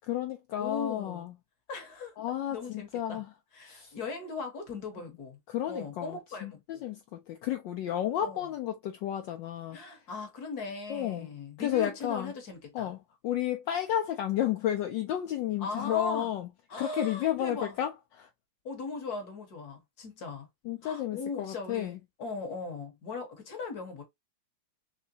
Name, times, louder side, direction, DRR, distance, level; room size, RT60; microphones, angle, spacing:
voice 1, 0.1-1.3 2.2-3.3 3.7-3.9 5.5-7.0 7.3-9.8 10.9-11.3 11.6-12.3 12.7-13.0 13.2-16.5 16.8-18.3 20.6-22.0, left 11 dB, 75° left, 1.1 m, -32 dB
voice 2, 0.6-1.3 1.7-2.2 2.5-3.2 3.5-5.4 5.7-6.8 8.2-8.4 9.7-12.9 15.6-16.3 16.7-17.7 18.6-20.5 20.8-24.0, left 3 dB, 55° left, 1.3 m, -39 dB
3.7 x 3.2 x 2.6 m
omnidirectional pair, 2.3 m